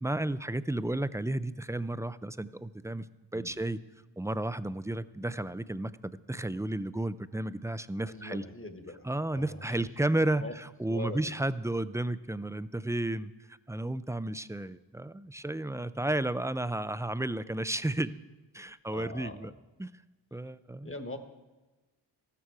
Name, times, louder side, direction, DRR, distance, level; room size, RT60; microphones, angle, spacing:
voice 1, 0.0-3.1 3.3-3.8 4.2-8.4 9.1-10.5 10.8-18.1 18.5-19.5 19.8-19.9 20.3-20.9, right 1 dB, 5° right, 15 dB, 0.3 m, -32 dB
voice 2, 8.0-9.9 10.4-10.5 10.9-11.3 18.9-19.6 20.8-21.2, left 1 dB, 25° left, 7 dB, 1.4 m, -42 dB
14.5 x 13.0 x 4.7 m, 1.2 s
wide cardioid pair, 65°, 46 cm